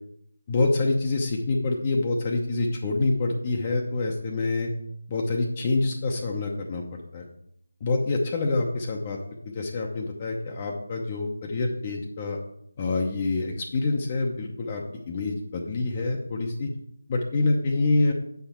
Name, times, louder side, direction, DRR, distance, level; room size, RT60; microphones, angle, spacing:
voice 1, 0.5-4.7 5.1-6.8 7.1-7.2 7.8-9.2 9.5-12.4 12.8-16.7 17.1-18.1, left 3 dB, 25° left, 0 dB, 0.8 m, -26 dB
7.8 x 5.8 x 4.4 m, 0.74 s
figure-of-eight pair, 160°, 0 cm